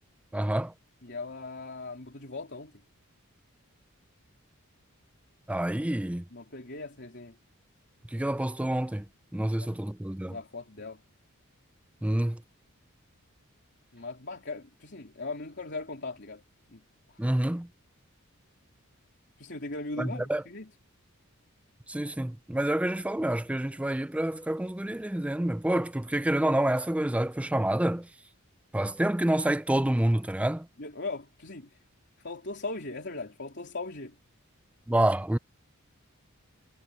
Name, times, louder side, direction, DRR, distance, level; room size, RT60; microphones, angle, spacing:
voice 1, 0.3-0.7 5.5-6.2 8.1-9.0 9.3-10.4 12.0-12.4 17.2-17.7 20.0-20.4 21.9-28.1 28.7-30.7 34.9-35.4, right 1 dB, 5° right, 0.4 m, -28 dB
voice 2, 1.0-2.8 6.3-7.3 9.4-9.9 10.3-11.0 13.9-16.4 16.7-16.8 17.1-17.2 19.4-20.7 30.8-31.8 32.2-34.2, left 3 dB, 50° left, 3.6 m, -39 dB
head